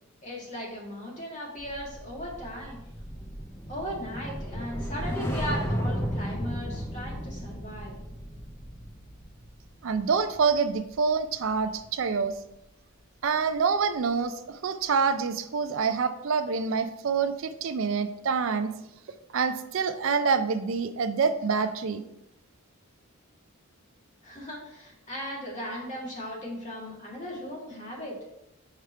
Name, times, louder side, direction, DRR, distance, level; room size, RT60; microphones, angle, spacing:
voice 1, 0.2-2.8 3.7-8.0 24.2-28.2, equal, 35° left, -4 dB, 1.9 m, -37 dB
sound 1, 1.6-12.0 12.3-12.6, equal, 10° left, 0.5 m, -35 dB
voice 2, 9.8-12.3 13.2-18.7 19.3-22.0, right 5 dB, 60° right, 10 dB, 0.4 m, -26 dB
4.9 x 4.6 x 4.5 m, 0.84 s
head